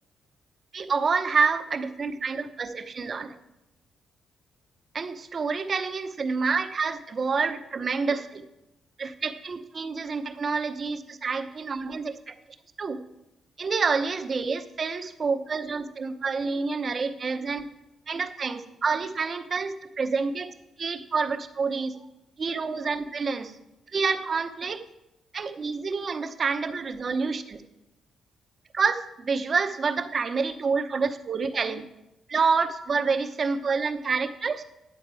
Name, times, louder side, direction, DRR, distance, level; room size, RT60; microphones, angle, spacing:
voice 1, 0.7-3.3 4.9-8.4 9.0-12.3 12.8-13.0 13.6-17.7 18.1-22.0 22.4-23.5 23.9-24.8 25.3-27.6 28.7-31.8 32.3-34.6, right 5 dB, 40° right, 7 dB, 0.9 m, -28 dB
10.5 x 7.9 x 4.8 m, 0.92 s
cardioid pair, 110°, 0 cm